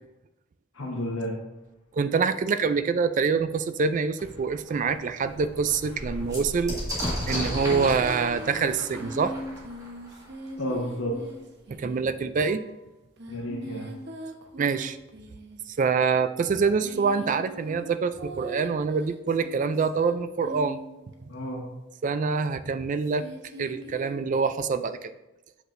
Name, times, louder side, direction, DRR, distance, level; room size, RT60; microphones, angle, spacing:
voice 1, 0.7-1.3 10.6-11.2 13.3-13.9 21.3-21.6, equal, 90° left, -3 dB, 1.1 m, -31 dB
sound 1, 1.5-2.1 4.2-6.8, left 1 dB, 30° left, 1.3 m, -51 dB
voice 2, 1.9-6.8 7.3-9.4 11.8-12.6 14.6-15.0 15.7-20.8 22.0-23.3 23.6-25.1, right 5 dB, 40° right, 12 dB, 0.3 m, -25 dB
sound 2, 4.3-4.4 4.8-4.9 5.2-10.7 11.7-11.8 12.0-12.7, equal, 20° right, 1.8 m, -34 dB
sound 3, 7.5-12.4 13.2-15.7 16.5-21.1 23.0-24.3, right 1 dB, 60° right, 0.9 m, -41 dB
7.9 x 6.0 x 2.6 m, 1.0 s
head